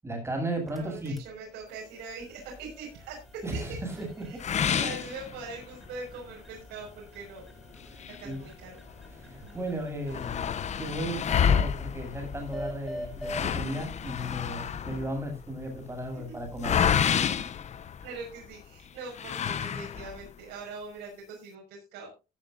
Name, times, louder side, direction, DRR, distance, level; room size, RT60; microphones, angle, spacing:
voice 1, 0.0-1.2 3.4-4.8 7.9-8.5 9.1-10.5 10.8-17.4, right 1 dB, 15° right, 2 dB, 7.6 m, -35 dB
sound 1, 0.5-15.0, equal, ahead, 3.7 m, -47 dB
voice 2, 0.7-3.6 4.3-4.4 4.8-7.4 8.2-8.8 9.4-9.6 16.1-16.2 18.0-22.1, right 4 dB, 90° right, -2 dB, 6.0 m, -42 dB
sound 2, 4.4-5.9 6.3-6.4 6.9-7.0 7.7-9.1 9.4-9.5 9.7-18.5 19.1-20.3, left 8 dB, 40° left, 0.9 m, -29 dB
sound 3, 12.6-18.7, left 5 dB, 85° left, 5.7 m, -52 dB
17.0 x 10.5 x 2.7 m, 0.29 s
cardioid pair, 110°, 17 cm